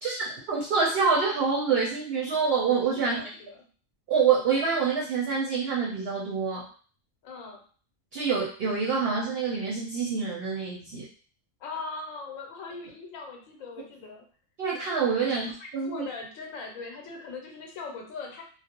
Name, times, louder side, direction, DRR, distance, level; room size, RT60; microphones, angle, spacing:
voice 1, 0.0-3.2 4.1-6.6 8.1-11.1 14.6-16.0, right 5 dB, 60° right, -3 dB, 0.7 m, -26 dB
voice 2, 3.0-3.6 7.2-7.6 11.6-14.2 15.3-15.5 15.8-18.4, left 4 dB, 90° left, 1 dB, 1.0 m, -40 dB
2.3 x 2.0 x 2.8 m, 0.43 s
omnidirectional pair, 1.4 m